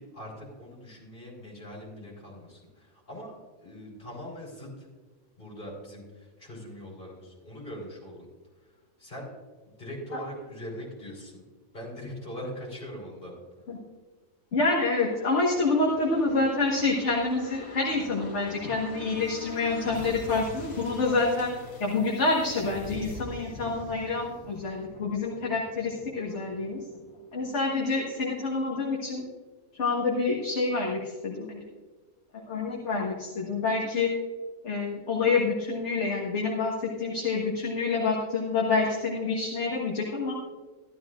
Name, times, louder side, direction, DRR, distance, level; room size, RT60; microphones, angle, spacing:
voice 1, 0.0-4.9 5.4-8.3 9.0-9.3 9.7-11.4 11.7-13.3, equal, 35° left, -4 dB, 4.3 m, -41 dB
voice 2, 14.5-21.6 21.8-26.9 27.3-29.2 29.7-31.6 32.5-34.1 34.6-40.3, left 3 dB, 55° left, -3 dB, 1.8 m, -27 dB
sound 1, 14.9-28.3 28.7-28.8, left 2 dB, 80° left, 2.1 m, -45 dB
14.5 x 13.0 x 2.5 m, 1.4 s
omnidirectional pair, 1.4 m